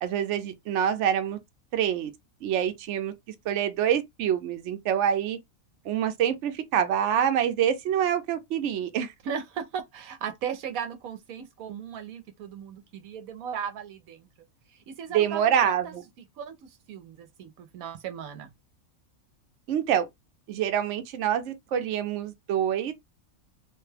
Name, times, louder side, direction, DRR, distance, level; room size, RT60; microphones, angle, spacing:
voice 1, 0.0-1.4 1.7-2.1 2.4-3.1 3.5-5.4 5.8-9.1 15.1-16.0 19.7-20.1 20.5-22.9, right 9 dB, 65° right, 0.9 m, -26 dB
voice 2, 9.2-14.3 14.7-15.9 16.4-18.5, right 7 dB, 85° right, 1.1 m, -37 dB
3.2 x 2.2 x 3.3 m
omnidirectional pair, 1.5 m